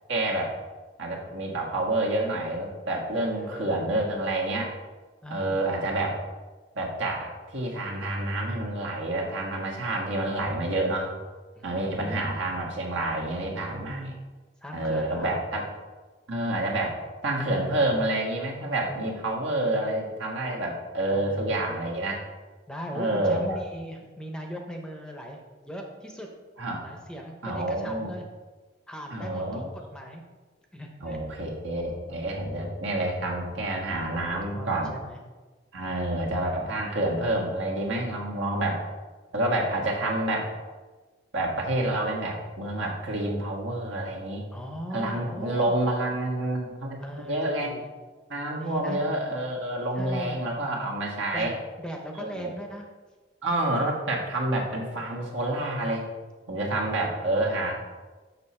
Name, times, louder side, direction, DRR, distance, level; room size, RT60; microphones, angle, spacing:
voice 1, 0.1-0.5 1.0-4.7 5.3-6.2 6.7-11.1 11.6-14.2 14.7-15.6 16.3-17.0 17.2-22.2 22.9-23.6 26.6-26.8 27.4-28.1 29.1-29.7 31.0-34.9 35.7-38.8 39.3-40.5 41.3-44.4 44.9-47.0 47.3-47.7 48.3-51.5 52.2-52.5 53.4-56.1 56.5-57.7, right 1 dB, 70° right, -2 dB, 1.5 m, -28 dB
voice 2, 3.3-4.0 5.2-5.7 11.6-12.4 14.6-15.3 21.0-21.5 22.7-25.4 25.6-26.3 26.8-28.3 28.9-30.2 30.7-31.2 34.2-35.2 39.7-40.1 44.5-45.7 47.0-47.9 48.6-49.0 49.9-50.4 51.3-52.9 56.5-57.7, equal, 5° left, 2 dB, 0.7 m, -40 dB
6.8 x 5.8 x 4.2 m, 1.3 s
head